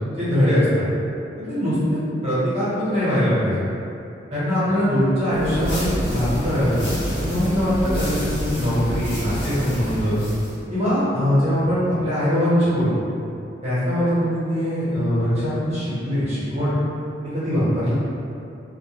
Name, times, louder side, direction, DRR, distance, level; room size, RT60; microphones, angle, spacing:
voice 1, 0.1-0.9 1.5-3.6 4.3-10.2 10.7-13.1 13.6-16.7 17.3-17.9, equal, 35° right, -12 dB, 0.9 m, -22 dB
sound 1, 5.3-10.6, equal, 70° left, 0.9 m, -27 dB
2.2 x 2.1 x 3.0 m, 2.7 s
head